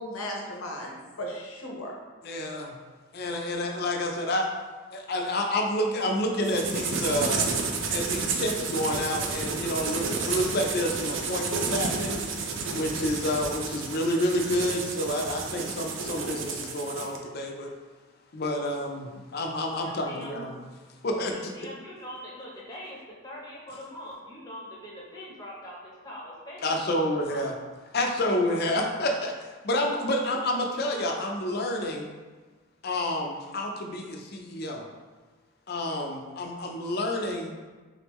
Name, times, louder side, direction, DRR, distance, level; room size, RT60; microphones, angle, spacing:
voice 1, 0.0-1.9 17.0-17.1, equal, 90° left, -1 dB, 0.9 m, -36 dB
voice 2, 2.2-2.7 3.1-4.5 4.9-7.5 7.9-12.2 12.7-17.7 18.3-20.6 21.0-21.3 26.6-27.5 27.9-32.2 32.8-34.8 35.7-37.6, left 1 dB, 45° left, 2 dB, 0.5 m, -29 dB
sound 1, 6.4-17.2, right 4 dB, 60° right, 0.4 m, -31 dB
voice 3, 19.8-20.4 21.3-27.5, left 1 dB, 20° left, -4 dB, 0.8 m, -43 dB
3.9 x 3.5 x 3.1 m, 1.3 s
head